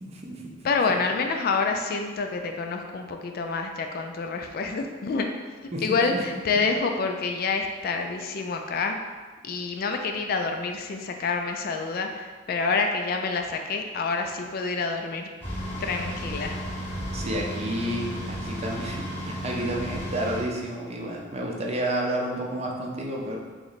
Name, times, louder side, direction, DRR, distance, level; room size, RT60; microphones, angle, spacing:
voice 1, 0.0-0.5 5.7-6.2 17.1-23.4, right 1 dB, 35° right, -1 dB, 0.5 m, -30 dB
voice 2, 0.6-5.3 5.8-9.0 9.4-15.3 15.8-16.6, left 4 dB, 50° left, 4 dB, 0.3 m, -27 dB
sound 1, 15.4-20.4, equal, 10° left, 0.9 m, -33 dB
3.1 x 3.0 x 4.0 m, 1.4 s
head